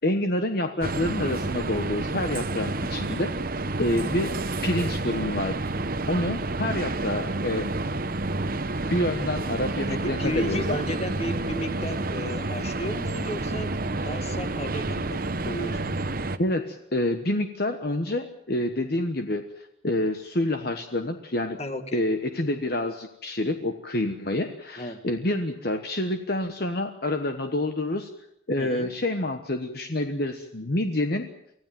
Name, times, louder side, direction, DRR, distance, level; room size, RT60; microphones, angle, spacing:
voice 1, 0.0-3.3 3.8-4.3 4.6-5.6 6.1-7.7 8.9-10.8 14.0-14.1 16.4-21.6 21.9-28.1 28.5-31.3, left 1 dB, 50° left, 6 dB, 1.2 m, -27 dB
sound 1, 0.8-16.4, right 2 dB, 45° right, 1.0 m, -29 dB
voice 2, 9.9-13.7 14.0-16.0 21.6-22.0 24.8-25.0 28.6-28.9, equal, 30° left, 8 dB, 1.9 m, -34 dB
24.5 x 15.5 x 9.2 m, 0.79 s
head